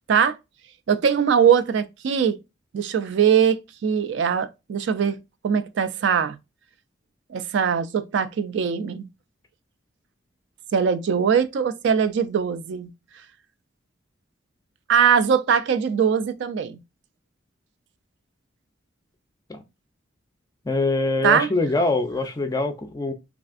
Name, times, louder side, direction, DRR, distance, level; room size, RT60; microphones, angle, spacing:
voice 1, 0.9-2.4 2.7-5.2 5.4-6.4 7.3-9.1 10.7-12.9 14.9-16.8 21.2-21.5, right 7 dB, 65° right, 0.3 m, -21 dB
voice 2, 20.6-23.1, left 2 dB, 20° left, 0.4 m, -24 dB
3.2 x 2.5 x 2.4 m
head